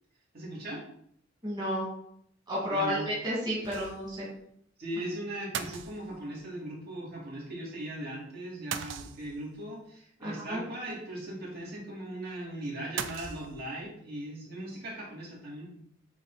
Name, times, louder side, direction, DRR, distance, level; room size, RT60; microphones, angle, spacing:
voice 1, 0.3-0.8 2.7-3.1 4.8-15.6, right 1 dB, 55° right, -5 dB, 2.9 m, -39 dB
voice 2, 1.4-1.9 2.5-4.2 10.2-10.6, equal, 20° right, -7 dB, 2.3 m, -31 dB
sound 1, 3.6-4.2 4.5-4.6 5.5-6.4 8.7-9.6 13.0-13.9, right 7 dB, 70° right, 0.5 m, -38 dB
8.8 x 3.8 x 4.2 m, 0.68 s
head